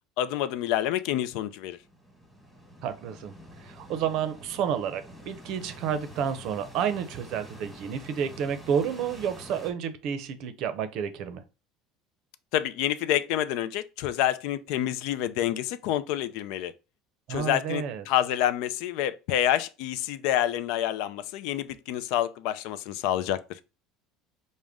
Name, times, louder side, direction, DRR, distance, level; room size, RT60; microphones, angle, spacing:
voice 1, 0.2-1.8 12.5-16.7 17.3-23.6, left 12 dB, 70° left, 0.4 m, -28 dB
sound 1, 1.5-9.7, equal, 5° right, 1.2 m, -47 dB
voice 2, 2.8-3.3 3.6-11.4 17.3-18.0, right 8 dB, 60° right, 0.6 m, -30 dB
5.0 x 2.1 x 3.5 m
supercardioid pair, 120°, 0 cm